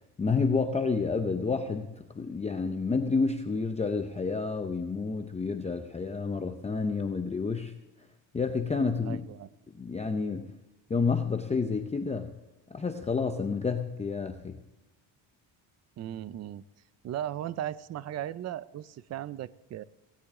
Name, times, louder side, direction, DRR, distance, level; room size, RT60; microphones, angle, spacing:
voice 1, 0.2-7.7 8.3-9.2 9.8-10.5 10.9-12.3 12.7-14.6, left 4 dB, 15° left, 5 dB, 0.5 m, -29 dB
voice 2, 9.0-9.5 16.0-16.6 17.0-19.8, right 11 dB, 35° right, 17 dB, 0.4 m, -37 dB
17.0 x 16.5 x 3.6 m, 1.0 s
cardioid pair, 160°, 49 cm